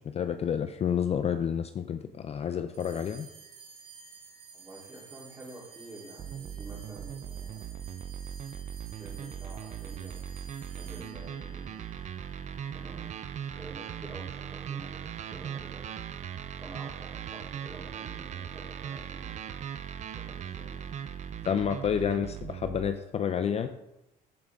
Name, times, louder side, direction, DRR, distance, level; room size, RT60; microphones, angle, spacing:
voice 1, 0.1-3.3 21.4-23.7, left 8 dB, 40° left, 9 dB, 0.5 m, -29 dB
sound 1, 2.7-13.4, right 6 dB, 65° right, 1.7 m, -52 dB
voice 2, 4.5-7.7 9.0-10.4 10.7-11.7 12.7-13.1 13.5-15.8 16.6-19.4 20.1-20.9, right 1 dB, 20° right, -4 dB, 3.3 m, -49 dB
sound 2, 6.2-22.9, right 8 dB, 45° right, 0.5 m, -39 dB
14.0 x 5.0 x 3.5 m, 0.90 s
cardioid pair, 110°, 17 cm